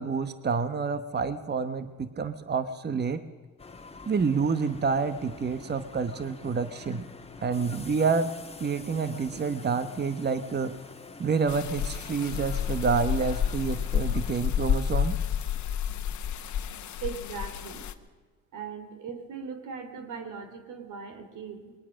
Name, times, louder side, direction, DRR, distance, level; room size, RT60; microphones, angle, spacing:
voice 1, 0.0-3.2 4.1-7.0 7.4-8.3 8.6-10.7 11.2-15.2, right 5 dB, 35° right, 11 dB, 1.1 m, -28 dB
sound 1, 3.6-14.3, left 3 dB, 20° left, 1.5 m, -46 dB
sound 2, 11.5-17.9, left 8 dB, 75° left, 1.3 m, -30 dB
voice 2, 17.0-17.9 18.5-21.7, right 6 dB, 80° right, 8 dB, 3.1 m, -39 dB
21.5 x 19.0 x 6.4 m, 1.4 s
cardioid pair, 90°, 30 cm